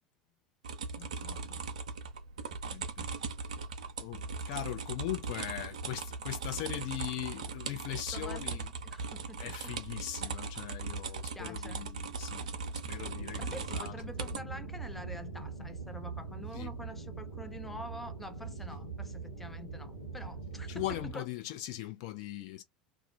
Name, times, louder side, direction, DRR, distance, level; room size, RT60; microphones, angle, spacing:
sound 1, 0.6-14.4, right 4 dB, 70° right, 0.4 m, -39 dB
voice 1, 1.0-1.6 2.7-3.1 4.0-8.7 9.4-12.5 12.9-13.9 16.5-16.7 20.7-22.6, left 14 dB, 55° left, 0.6 m, -40 dB
voice 2, 8.1-9.7 11.3-11.8 13.4-21.3, equal, 5° left, 0.4 m, -47 dB
sound 2, 13.0-21.1, right 4 dB, 85° left, 1.0 m, -42 dB
2.4 x 2.2 x 2.4 m
figure-of-eight pair, 75°, 4 cm